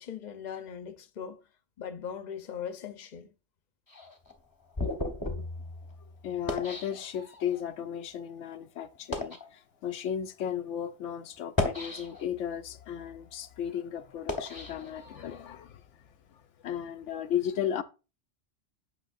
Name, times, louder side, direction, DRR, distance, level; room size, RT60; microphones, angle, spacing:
voice 1, 0.0-1.4 1.8-3.3, left 8 dB, 45° left, 0.8 m, -39 dB
sound 1, 3.9-7.6 8.3-8.4 8.9-9.5 10.3-10.4 11.4-12.5 13.0-15.5, left 2 dB, 20° left, 1.0 m, -36 dB
voice 2, 6.2-15.8 16.3-17.8, left 9 dB, 85° left, 0.9 m, -35 dB
8.9 x 5.8 x 2.5 m
omnidirectional pair, 1.2 m